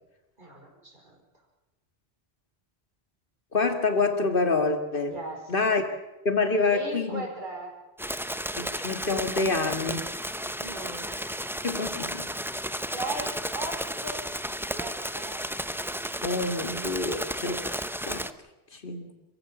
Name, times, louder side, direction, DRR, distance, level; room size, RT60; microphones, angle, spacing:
voice 1, 0.4-1.1 5.0-5.5 6.7-7.7 10.5-11.1 12.9-14.2 14.7-15.4, right 2 dB, 50° right, 1 dB, 5.0 m, -38 dB
voice 2, 3.5-5.1 5.5-5.8 6.2-7.3 8.6-10.1 11.6-12.3 16.2-17.7 18.0-18.3 18.7-19.1, left 3 dB, 55° left, 7 dB, 2.3 m, -27 dB
sound 1, 8.0-18.3, equal, 5° right, 0.7 m, -33 dB
28.0 x 15.5 x 7.3 m, 1.1 s
omnidirectional pair, 1.1 m